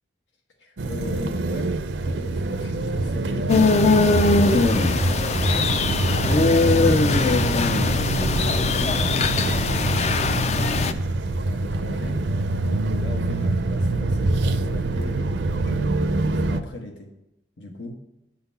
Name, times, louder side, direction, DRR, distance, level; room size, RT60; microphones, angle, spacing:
voice 1, 0.6-1.7 2.0-3.7 4.0-7.4 7.9-9.1 11.1-12.2 12.6-17.1 17.6-18.0, left 2 dB, 85° left, 2 dB, 1.2 m, -39 dB
sound 1, 0.8-16.6, right 2 dB, 70° right, 0.5 m, -25 dB
sound 2, 3.5-10.9, left 3 dB, 35° left, 0.4 m, -21 dB
8.7 x 4.0 x 5.5 m, 0.87 s
head